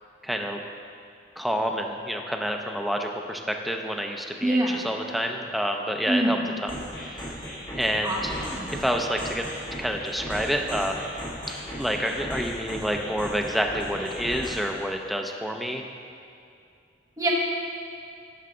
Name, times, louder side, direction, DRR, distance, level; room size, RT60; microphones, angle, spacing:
voice 1, 0.2-0.6 1.4-6.7 7.0-7.2 7.8-8.3 8.8-9.5 9.8-11.1 11.8-15.9, equal, ahead, 2 dB, 0.5 m, -28 dB
voice 2, 4.4-4.8 6.1-6.3 8.0-8.7 17.2-17.3, right 1 dB, 20° right, -3 dB, 1.1 m, -25 dB
sound 1, 6.7-14.7, equal, 25° left, 2.0 m, -36 dB
9.2 x 5.8 x 3.8 m, 2.5 s
head